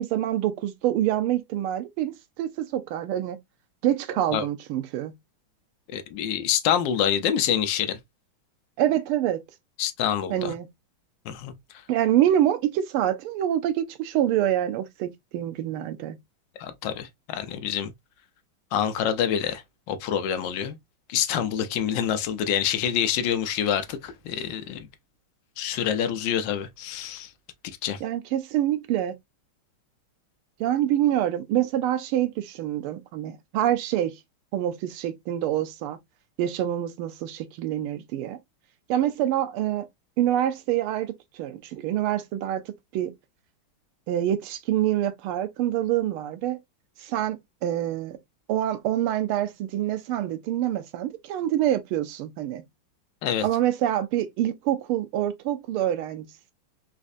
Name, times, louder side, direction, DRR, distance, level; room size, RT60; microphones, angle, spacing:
voice 1, 0.0-3.4 3.8-5.1 8.8-9.4 10.3-10.7 11.9-16.2 28.0-29.1 30.6-34.2 34.5-36.0 36.4-38.4 38.9-39.9 40.2-42.6 42.9-43.1 44.1-46.6 47.0-48.2 48.5-52.6 53.4-56.3, right 12 dB, 85° right, 1.5 m, -26 dB
voice 2, 5.9-8.0 9.8-10.5 11.3-11.5 16.6-17.9 18.7-19.6 19.9-20.8 21.1-24.9 25.6-27.3 27.8-28.0 53.2-53.4, left 9 dB, 75° left, 1.1 m, -26 dB
4.2 x 2.4 x 2.4 m
omnidirectional pair, 2.3 m